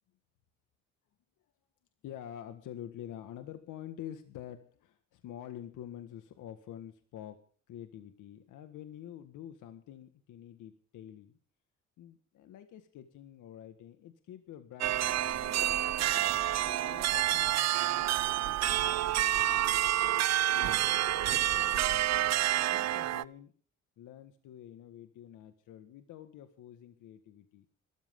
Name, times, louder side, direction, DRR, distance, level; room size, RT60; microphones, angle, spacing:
voice 1, 2.0-7.4 7.7-11.4 12.0-15.6 16.0-19.8 20.5-23.5 24.0-27.6, left 11 dB, 85° left, 8 dB, 1.8 m, -48 dB
sound 1, 14.8-23.2, right 13 dB, 60° right, 0.6 m, -28 dB
22.0 x 13.5 x 3.8 m, 0.43 s
cardioid pair, 90°, 30 cm